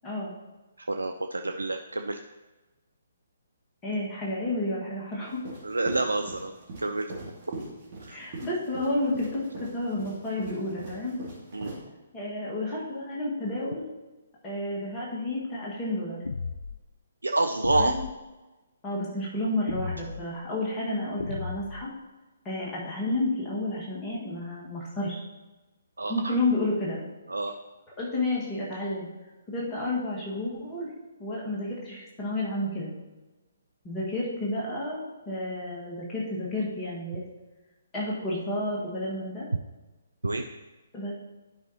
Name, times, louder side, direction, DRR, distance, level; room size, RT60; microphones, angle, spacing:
voice 1, 0.0-0.3 3.8-5.4 8.1-11.2 12.1-13.8 14.4-16.2 17.7-18.0 18.8-21.9 22.5-25.2 26.1-27.0 28.0-29.1 29.5-30.9 31.2-32.9 33.8-37.2 37.9-39.5 40.9-41.1, left 1 dB, 15° left, -5 dB, 1.7 m, -31 dB
voice 2, 0.9-2.2 5.6-6.5 6.8-7.1 8.1-8.2 11.5-11.7 17.2-17.9 26.0-26.3 27.3-27.5 40.2-40.5, right 2 dB, 75° right, 6 dB, 0.4 m, -28 dB
sound 1, 5.3-11.8, right 3 dB, 35° right, 2.2 m, -41 dB
sound 2, 16.2-16.8 17.6-18.2 19.7-20.2 21.2-21.8, left 4 dB, 65° left, 0.3 m, -34 dB
11.0 x 5.3 x 2.9 m, 1.2 s
figure-of-eight pair, 130°, 0 cm